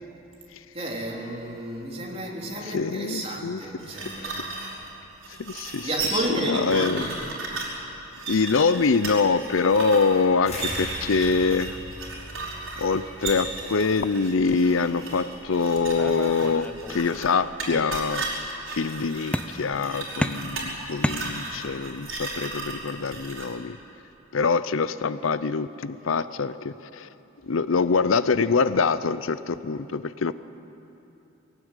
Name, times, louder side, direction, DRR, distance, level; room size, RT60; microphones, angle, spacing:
voice 1, 0.7-4.4 5.8-7.1, right 1 dB, 30° right, -2 dB, 3.4 m, -31 dB
voice 2, 2.6-3.9 4.2-4.4 5.4-7.1 8.3-11.8 12.8-18.3 18.7-23.8 24.3-27.1 27.4-30.3, left 4 dB, 85° left, 15 dB, 0.6 m, -24 dB
sound 1, 3.8-23.5, right 3 dB, 85° right, 5.2 m, -35 dB
sound 2, 10.5-15.4, equal, 35° left, 6.3 m, -40 dB
sound 3, 16.0-17.3 17.7-18.4 19.3-19.8 20.2-21.8, equal, 5° left, 0.6 m, -32 dB
21.0 x 17.5 x 9.0 m, 2.9 s
head